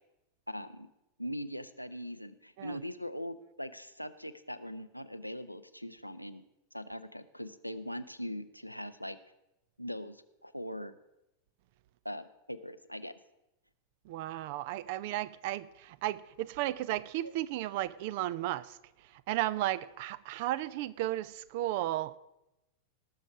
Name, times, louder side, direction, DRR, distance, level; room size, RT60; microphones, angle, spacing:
voice 1, 0.5-0.9 1.2-6.4 6.7-9.2 9.8-10.9 12.0-13.1 17.2-17.3, equal, 90° left, 0.5 m, -41 dB
voice 2, 14.0-22.2, right 14 dB, 50° right, 0.5 m, -34 dB
19.0 x 6.5 x 4.8 m
figure-of-eight pair, 90°, 0 cm